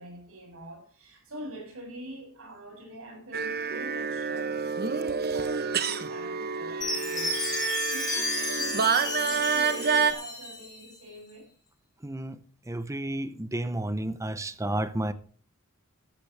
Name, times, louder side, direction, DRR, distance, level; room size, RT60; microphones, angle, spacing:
voice 1, 0.0-7.4 7.9-11.5, right 1 dB, 75° right, 7.3 m, -44 dB
sound 1, 3.3-10.1, right 5 dB, 50° right, 1.0 m, -28 dB
Chime, 6.8-10.9, left 3 dB, 20° left, 6.0 m, -33 dB
voice 2, 12.0-12.4 12.7-15.1, right 1 dB, 15° right, 0.7 m, -31 dB
13.5 x 12.5 x 3.3 m
head